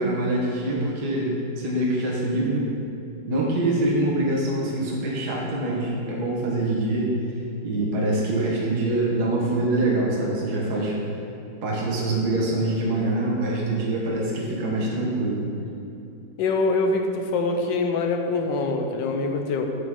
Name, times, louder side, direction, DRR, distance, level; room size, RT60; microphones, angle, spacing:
voice 1, 0.0-2.7 3.3-7.1 7.6-11.0 11.6-15.4, right 2 dB, 55° right, -4 dB, 1.7 m, -24 dB
voice 2, 16.4-19.7, left 3 dB, 70° left, 4 dB, 1.4 m, -24 dB
9.2 x 7.1 x 3.7 m, 2.7 s
omnidirectional pair, 2.2 m